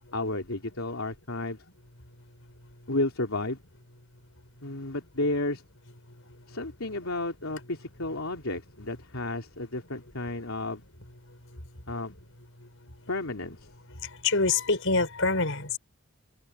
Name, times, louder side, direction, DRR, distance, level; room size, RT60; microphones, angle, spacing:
voice 1, 0.1-1.6 2.9-3.6 4.6-5.6 6.5-10.8 11.9-12.1 13.1-13.7, left 2 dB, 85° left, 3.2 m, -32 dB
voice 2, 14.2-15.8, left 3 dB, 70° left, 6.5 m, -25 dB
open air
head